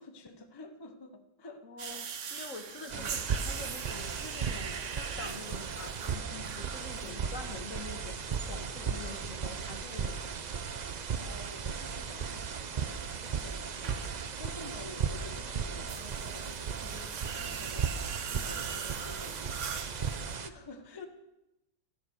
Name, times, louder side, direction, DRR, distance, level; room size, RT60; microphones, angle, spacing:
voice 1, 0.0-1.7 2.9-3.3 7.0-7.4 9.1-9.5 11.1-14.1 14.4-21.0, left 2 dB, 20° left, 0.8 m, -50 dB
voice 2, 1.6-10.3 21.0-21.1, left 3 dB, 55° left, 1.8 m, -46 dB
sound 1, 1.8-20.4, right 7 dB, 55° right, 1.2 m, -44 dB
sound 2, 2.9-20.5, right 6 dB, 80° right, 0.3 m, -36 dB
13.5 x 12.0 x 6.4 m
omnidirectional pair, 1.7 m